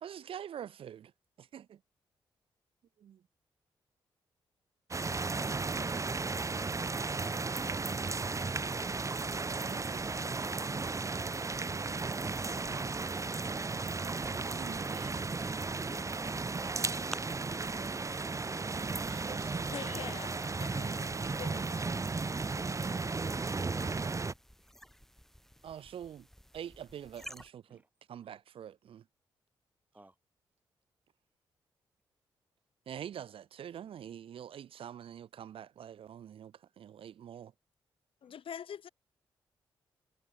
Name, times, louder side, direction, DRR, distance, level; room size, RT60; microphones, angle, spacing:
voice 1, 0.0-1.1 1.4-1.8 3.0-3.2 9.4-10.5 12.7-12.8 13.8-15.3 18.6-20.1 20.9-21.8 25.6-26.3 26.5-27.8 28.1-29.0 32.9-37.5, right 9 dB, 75° right, 1.1 m, -47 dB
sound 1, 4.9-24.3, right 3 dB, 35° right, 1.4 m, -35 dB
sound 2, 8.3-27.5, equal, 5° left, 4.0 m, -55 dB
voice 2, 11.0-13.3 14.9-16.8 23.5-24.3 24.6-24.7 27.7-27.8 29.9-30.1, right 2 dB, 15° right, 3.3 m, -54 dB
voice 3, 19.7-20.3 20.6-21.1 21.4-22.0 38.2-38.9, left 8 dB, 70° left, 3.8 m, -44 dB
supercardioid pair, 55°, 10 cm